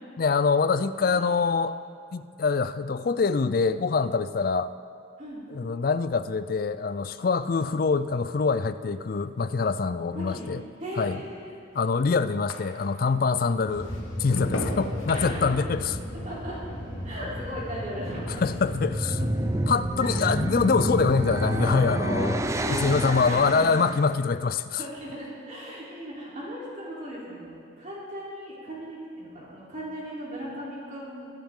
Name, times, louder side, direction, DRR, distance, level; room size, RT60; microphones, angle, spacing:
voice 1, 0.2-1.8 2.1-4.7 5.5-10.6 11.0-11.2 11.7-13.9 14.2-15.9 18.4-19.3 19.7-24.8, left 4 dB, 45° left, 14 dB, 0.4 m, -25 dB
sound 1, 6.4-13.1 13.5-18.0 18.3-18.8, left 1 dB, 80° left, 1.5 m, -40 dB
voice 2, 10.1-10.5 10.8-11.5 15.1-15.6 16.2-16.6 17.0-18.6 19.4-19.5 20.0-20.5 22.5-23.7 24.7-31.3, equal, 40° right, -6 dB, 3.5 m, -37 dB
sound 2, 13.7-23.2, equal, 25° left, 3.9 m, -35 dB
sound 3, 18.7-24.0, right 1 dB, 15° right, 0.5 m, -29 dB
22.5 x 10.5 x 3.8 m, 2.3 s
head